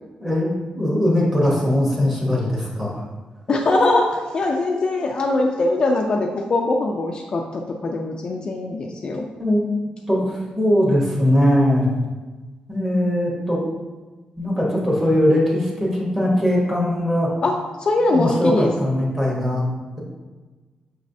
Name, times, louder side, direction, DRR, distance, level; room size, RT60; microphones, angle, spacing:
voice 1, 0.2-3.0 9.4-9.7 10.1-11.9 12.7-13.6 14.4-17.3 18.1-19.6, left 1 dB, 15° right, -4 dB, 1.0 m, -20 dB
voice 2, 3.5-9.2 17.4-18.7, left 2 dB, 35° left, 1 dB, 0.3 m, -22 dB
5.8 x 3.1 x 2.6 m, 1.3 s
wide cardioid pair, 175°, 3 cm